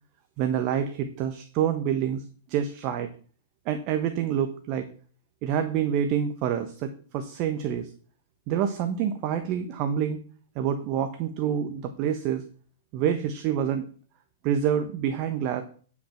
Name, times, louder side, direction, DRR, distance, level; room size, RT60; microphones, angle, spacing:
voice 1, 0.4-2.2 2.5-3.1 3.7-4.9 5.4-7.9 8.5-10.2 10.6-12.4 12.9-13.8 14.4-15.6, right 9 dB, 45° right, 9 dB, 1.1 m, -27 dB
9.9 x 6.1 x 5.7 m, 0.44 s
hypercardioid pair, 110°, 0 cm